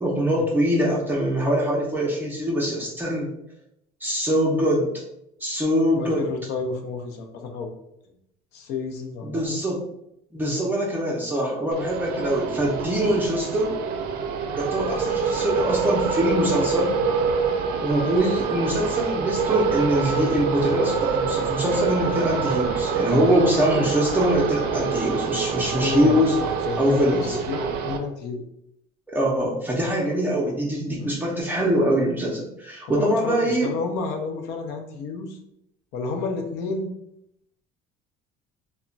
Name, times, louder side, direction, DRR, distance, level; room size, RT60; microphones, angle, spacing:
voice 1, 0.0-3.3 4.0-4.9 5.4-6.2 9.2-9.8 10.3-13.8 14.6-17.0 17.8-26.3 26.8-27.4 29.1-33.7, equal, 10° right, -4 dB, 0.5 m, -23 dB
voice 2, 5.9-7.7 8.5-9.6 25.8-28.4 31.0-31.2 32.8-35.4 35.9-36.9, left 4 dB, 70° left, 4 dB, 0.6 m, -30 dB
sound 1, 11.7-28.0, right 5 dB, 60° right, 0.5 m, -26 dB
2.2 x 2.1 x 3.8 m, 0.79 s
cardioid pair, 150°, 18 cm